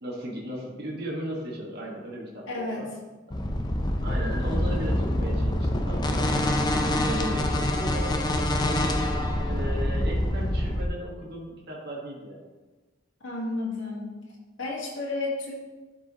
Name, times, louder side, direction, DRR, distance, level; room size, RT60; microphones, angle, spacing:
voice 1, 0.0-2.9 3.3-3.4 4.0-6.3 6.9-8.1 9.5-12.4, right 1 dB, 55° right, -3 dB, 1.5 m, -36 dB
voice 2, 2.5-2.9 13.2-14.1 14.6-15.5, left 2 dB, 80° left, -5 dB, 1.8 m, -31 dB
sound 1, 3.3-10.9, left 1 dB, 20° left, 0.6 m, -26 dB
12.0 x 4.7 x 3.0 m, 1.2 s
head